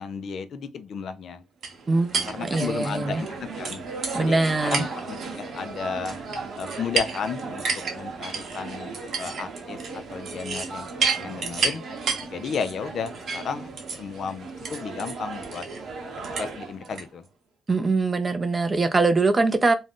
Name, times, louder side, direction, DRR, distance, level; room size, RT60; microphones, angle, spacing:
voice 1, 0.0-1.4 2.3-3.9 4.2-6.2 6.6-7.6 7.9-10.9 11.2-11.8 12.2-13.7 14.0-15.6 16.4-17.2, left 6 dB, 60° left, 0.3 m, -33 dB
sound 1, 1.6-17.1, right 4 dB, 55° right, 0.8 m, -32 dB
voice 2, 1.9-3.2 4.1-4.8 17.7-19.7, right 3 dB, 25° right, 0.4 m, -23 dB
2.5 x 2.0 x 3.5 m
cardioid pair, 90°, 0 cm